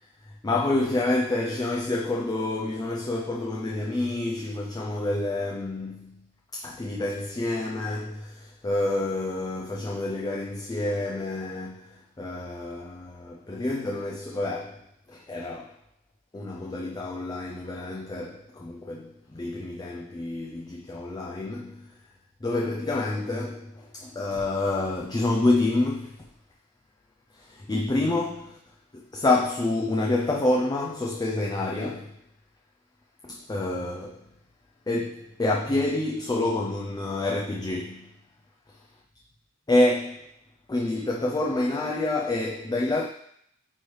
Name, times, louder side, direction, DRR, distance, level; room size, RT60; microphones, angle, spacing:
voice 1, 0.4-6.2 6.5-15.7 16.3-21.9 22.4-26.2 27.4-28.6 28.9-32.2 33.2-34.3 34.9-38.1 39.7-40.2 40.7-43.1, left 2 dB, 20° left, 0.4 m, -28 dB
9.5 x 3.2 x 3.2 m
head